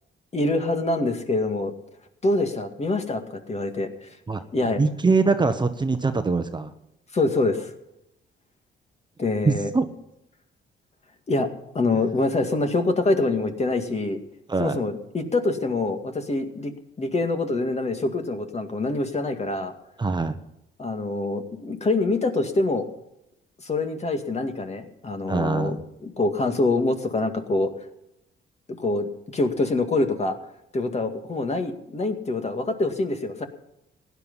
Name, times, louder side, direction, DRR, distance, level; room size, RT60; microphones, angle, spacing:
voice 1, 0.3-1.7 2.2-3.9 4.5-4.8 7.1-7.7 9.2-9.7 11.3-14.2 14.6-16.7 17.0-19.7 20.8-22.9 23.6-27.7 28.8-30.4 30.7-33.4, left 2 dB, 35° left, 6 dB, 2.1 m, -25 dB
voice 2, 4.8-6.7 9.4-9.9 14.5-14.8 20.0-20.4 25.3-25.8, right 4 dB, 20° right, 8 dB, 1.0 m, -23 dB
16.0 x 10.5 x 5.6 m, 0.84 s
cardioid pair, 90°, 20 cm